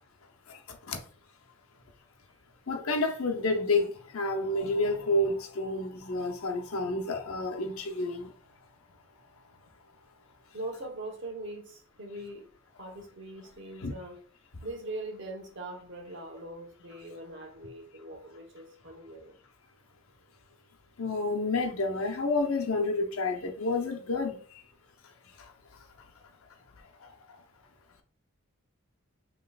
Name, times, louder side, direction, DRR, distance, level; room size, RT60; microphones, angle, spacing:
voice 1, 0.5-1.0 2.7-8.3 13.8-13.9 21.0-24.6 25.4-25.5 26.8-27.4, left 2 dB, 85° left, 0.7 m, -30 dB
voice 2, 10.5-12.5 12.8-14.2 14.6-19.4, right 1 dB, 60° right, 1.0 m, -41 dB
5.4 x 3.0 x 2.4 m
head